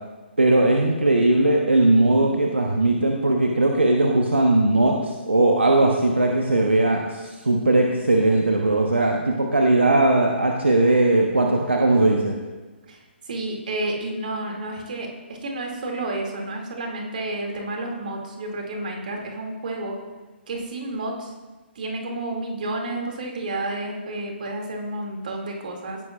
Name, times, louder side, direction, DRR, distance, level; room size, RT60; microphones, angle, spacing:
voice 1, 0.4-12.3, right 2 dB, 75° right, 1 dB, 1.1 m, -19 dB
voice 2, 13.3-20.0 20.5-21.3 21.7-26.0, right 2 dB, 50° right, 1 dB, 2.4 m, -30 dB
17.0 x 10.0 x 2.5 m, 1.2 s
figure-of-eight pair, 135°, 6 cm